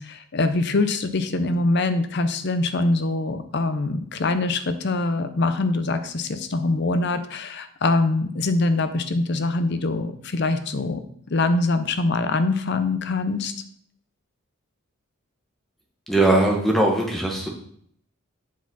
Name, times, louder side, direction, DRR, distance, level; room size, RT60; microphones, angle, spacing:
voice 1, 0.0-11.0 11.3-13.5, left 2 dB, 55° left, 10 dB, 0.6 m, -23 dB
voice 2, 16.1-17.5, right 2 dB, ahead, -1 dB, 1.1 m, -20 dB
7.4 x 4.1 x 4.1 m, 0.66 s
head